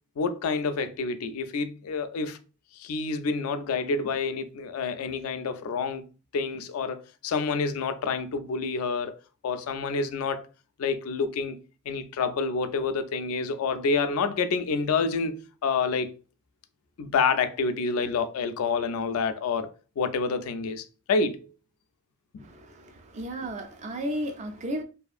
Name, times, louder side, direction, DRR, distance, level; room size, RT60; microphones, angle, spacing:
voice 1, 0.2-2.4 2.7-6.0 6.3-9.1 9.4-10.4 10.8-11.6 11.9-16.2 17.0-19.7 20.0-21.5 22.3-22.5, left 4 dB, 85° left, 0.4 m, -28 dB
voice 2, 22.4-24.8, equal, 30° right, 0.3 m, -34 dB
2.7 x 2.4 x 2.4 m
head